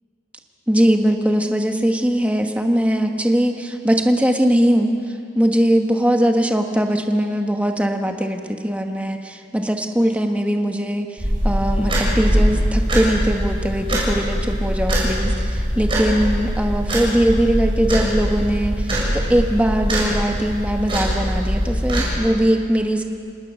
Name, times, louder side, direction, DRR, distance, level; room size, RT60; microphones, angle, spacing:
voice 1, 0.7-23.0, equal, 5° right, 4 dB, 1.3 m, -20 dB
sound 1, 11.2-22.1, equal, 30° right, 6.6 m, -22 dB
29.0 x 19.5 x 6.4 m, 2.4 s
head